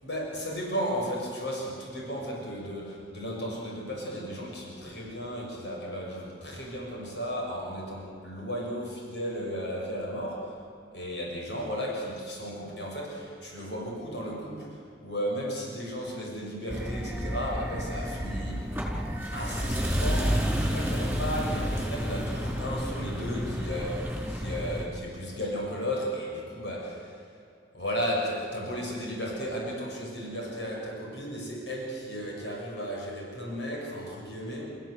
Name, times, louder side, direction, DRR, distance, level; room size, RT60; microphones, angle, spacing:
voice 1, 0.0-10.7 10.9-18.7 19.3-27.2 27.7-34.8, equal, 75° left, -2 dB, 7.1 m, -34 dB
sound 1, 16.7-24.9, equal, 5° right, 4.7 m, -30 dB
30.0 x 15.5 x 8.3 m, 2.4 s
head